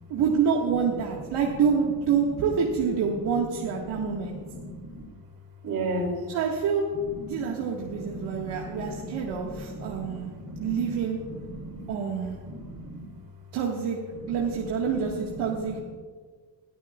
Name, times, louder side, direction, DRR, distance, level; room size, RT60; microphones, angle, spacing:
voice 1, 0.1-4.4 6.3-6.8 7.2-10.3 10.6-11.2 11.9-12.4 13.5-14.0 14.3-15.8, right 6 dB, 75° right, -2 dB, 1.8 m, -27 dB
voice 2, 3.5-5.0 5.6-6.1 7.1-7.5 7.8-10.9 11.2-11.9 12.5-13.0 14.1-14.4 14.9-15.0 15.3-15.8, right 1 dB, 60° right, 1 dB, 4.1 m, -36 dB
21.5 x 13.5 x 2.4 m, 1.5 s
cardioid pair, 150°, 40 cm